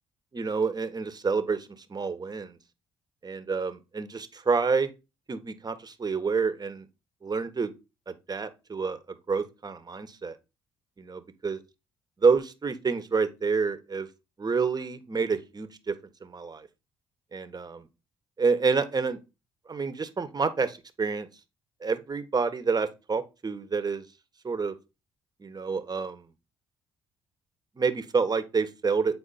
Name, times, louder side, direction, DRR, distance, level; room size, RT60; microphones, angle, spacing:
voice 1, 0.3-2.6 3.2-4.9 5.3-6.8 7.2-7.7 8.1-10.4 11.1-11.6 12.2-14.1 14.4-15.9 16.2-16.7 17.3-17.8 18.4-19.2 19.7-21.3 21.8-24.0 24.4-24.7 25.4-26.2 27.8-29.1, right 5 dB, 30° right, 1.5 m, -28 dB
8.8 x 4.3 x 4.3 m
hypercardioid pair, 50°, 12 cm